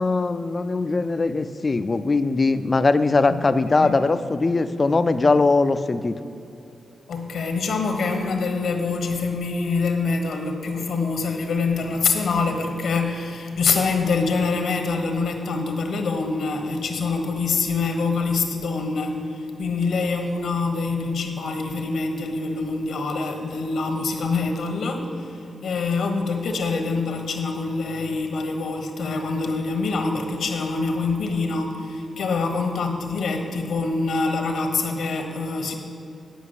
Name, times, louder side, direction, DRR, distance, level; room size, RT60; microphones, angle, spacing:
voice 1, 0.0-6.2, left 3 dB, 30° left, 11 dB, 0.4 m, -21 dB
voice 2, 3.3-4.0 7.1-35.7, left 4 dB, 75° left, 4 dB, 1.2 m, -25 dB
9.3 x 5.8 x 8.2 m, 2.7 s
wide cardioid pair, 160°, 0 cm